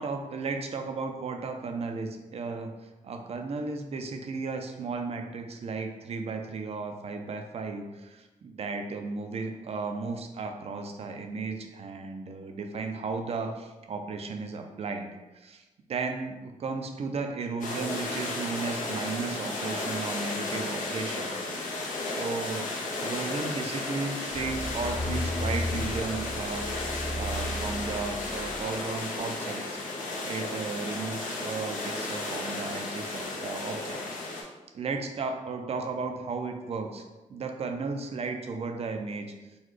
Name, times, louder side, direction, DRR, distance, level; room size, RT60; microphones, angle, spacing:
voice 1, 0.0-29.6 30.2-37.0 37.3-39.3, right 4 dB, 50° right, 5 dB, 0.4 m, -35 dB
sound 1, 17.6-34.4, left 2 dB, 80° left, 0.7 m, -34 dB
sound 2, 24.3-28.7 29.2-29.3, left 1 dB, 15° left, 0.7 m, -34 dB
3.9 x 2.2 x 3.1 m, 1.1 s
wide cardioid pair, 115°, 13 cm